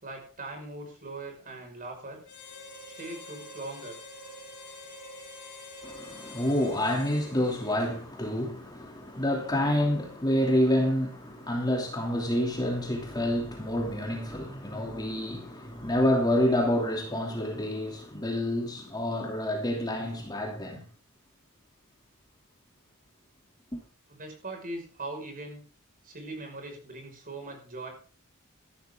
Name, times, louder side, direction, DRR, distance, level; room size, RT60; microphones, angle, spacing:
voice 1, 0.0-2.2 3.0-4.0 24.1-25.6 26.0-27.9, right 2 dB, 40° right, 5.7 m, -40 dB
Harmonica, 2.2-8.2, left 2 dB, 50° left, 3.6 m, -46 dB
voice 2, 5.8-20.8, left 1 dB, 20° left, 2.9 m, -28 dB
14.5 x 12.5 x 3.8 m
head